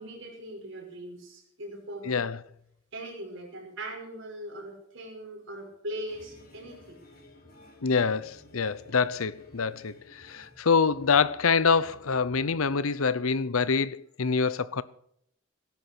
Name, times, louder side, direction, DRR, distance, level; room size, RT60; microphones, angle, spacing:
voice 1, 0.0-2.2 2.9-7.0, right 1 dB, 60° right, 5.5 m, -40 dB
voice 2, 2.1-2.4 7.8-14.8, left 5 dB, 85° left, 0.8 m, -26 dB
sound 1, 6.1-12.8, left 1 dB, 45° left, 5.5 m, -55 dB
18.5 x 10.5 x 6.1 m
head